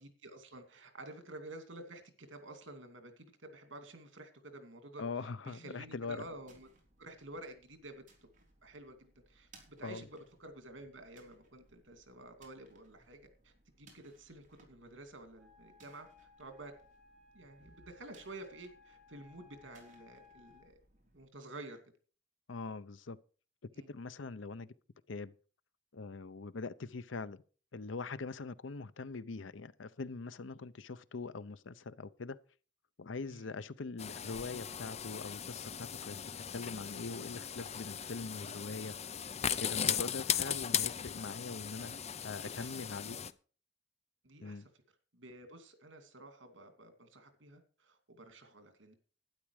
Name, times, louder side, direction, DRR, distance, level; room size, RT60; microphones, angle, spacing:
voice 1, 0.0-6.7 7.0-8.0 8.6-16.7 17.3-20.8 21.1-21.8 23.7-23.9 33.3-33.6 42.4-42.8 44.2-44.6 45.1-48.9, right 2 dB, 80° right, 2.5 m, -51 dB
voice 2, 5.0-6.3 9.8-10.0 22.5-23.2 23.9-24.7 25.1-25.3 25.9-27.4 27.7-32.4 33.0-39.1 39.6-42.0 42.2-43.2 44.4-44.7, left 4 dB, 80° left, 0.7 m, -42 dB
sound 1, 5.9-21.2, right 2 dB, 45° right, 3.8 m, -66 dB
Wind instrument woodwind instrument, 15.3-20.7, left 4 dB, ahead, 4.0 m, -62 dB
sound 2, 34.0-43.3, left 8 dB, 35° left, 0.6 m, -38 dB
12.0 x 10.0 x 4.9 m
head